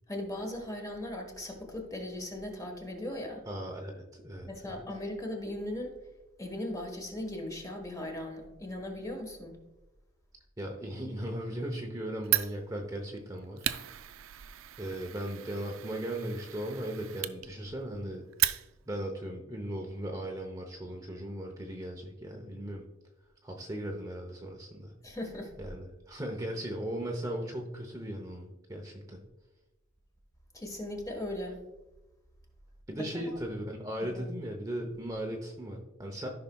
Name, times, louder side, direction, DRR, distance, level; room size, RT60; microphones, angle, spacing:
voice 1, 0.1-3.4 4.5-5.9 6.4-9.6 25.0-25.5 30.5-31.6 33.0-33.4 34.0-34.2, left 1 dB, 15° left, 2 dB, 1.4 m, -38 dB
voice 2, 3.5-4.5 10.6-13.7 14.8-18.2 18.9-22.8 23.4-24.9 25.6-29.2 32.9-36.3, right 1 dB, 15° right, 1 dB, 0.8 m, -37 dB
Fire, 12.2-19.0, right 14 dB, 80° right, 0.4 m, -35 dB
14.0 x 5.7 x 2.3 m, 1.0 s
head